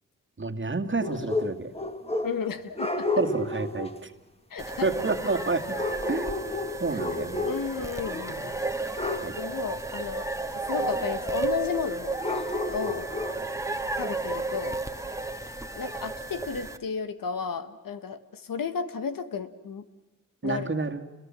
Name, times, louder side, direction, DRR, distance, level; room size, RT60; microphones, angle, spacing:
voice 1, 0.4-1.7 3.2-4.1 4.8-5.7 6.1-6.4 6.8-7.5 8.3-8.5 9.2-9.4 12.9-13.0 20.4-21.0, right 3 dB, 35° right, 5 dB, 2.2 m, -29 dB
sound 1, 1.0-2.5 2.8-4.0 5.8-8.4 9.0-9.4 12.2-13.5, left 2 dB, 20° left, 2.0 m, -31 dB
voice 2, 2.2-3.1 4.5-4.9 6.9-7.0 7.4-8.6 9.4-10.3 10.5-12.2 12.7-13.1 14.0-14.8 15.7-19.9 20.4-20.7, left 6 dB, 80° left, 10 dB, 1.7 m, -33 dB
sound 2, 4.6-16.8, right 3 dB, 10° right, 1.7 m, -33 dB
29.0 x 22.0 x 7.6 m, 1.2 s
cardioid pair, 60°, 33 cm